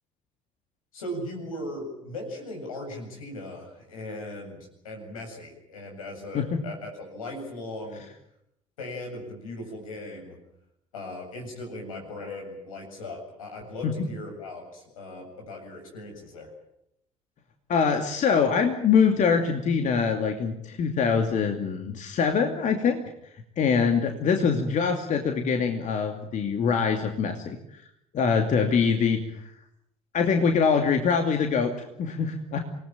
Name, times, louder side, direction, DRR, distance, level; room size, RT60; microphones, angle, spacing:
voice 1, 0.9-8.0 8.8-10.4 10.9-16.5, left 1 dB, 80° left, 2 dB, 7.9 m, -38 dB
voice 2, 17.7-23.0 23.6-27.6 28.1-29.2 30.1-32.6, left 6 dB, 45° left, 4 dB, 2.6 m, -24 dB
27.0 x 19.5 x 9.1 m, 0.79 s
figure-of-eight pair, 60°, 18 cm